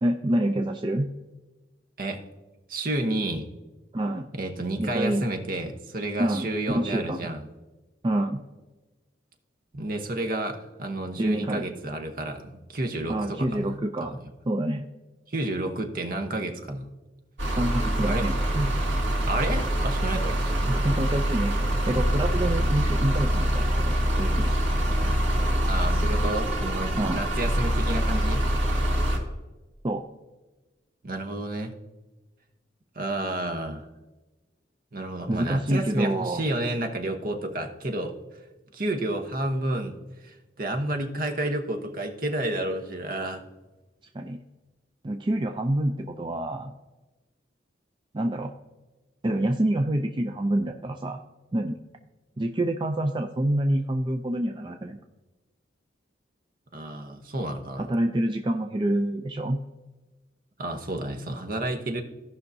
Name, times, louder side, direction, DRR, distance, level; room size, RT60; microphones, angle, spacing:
voice 1, 0.0-1.1 3.9-4.3 4.8-5.2 6.2-7.2 8.0-8.4 11.2-11.7 13.1-14.1 14.4-14.9 17.6-18.7 20.7-24.5 27.0-27.2 29.8-30.0 35.3-36.4 44.1-44.4 45.0-46.7 48.1-48.5 49.2-51.2 51.5-51.8 52.4-55.0 57.8-59.6, right 1 dB, 25° right, 4 dB, 0.5 m, -27 dB
voice 2, 2.7-3.5 4.3-7.4 9.7-13.7 14.0-14.2 15.3-16.9 18.0-18.3 19.2-20.9 25.7-28.4 31.0-31.7 32.9-33.9 34.9-38.1 38.7-40.0 40.2-43.4 56.7-57.9 60.6-62.0, right 1 dB, 50° right, 5 dB, 1.0 m, -30 dB
sound 1, 17.4-29.2, equal, 80° right, 2.6 m, -25 dB
16.5 x 5.7 x 2.7 m, 1.1 s
head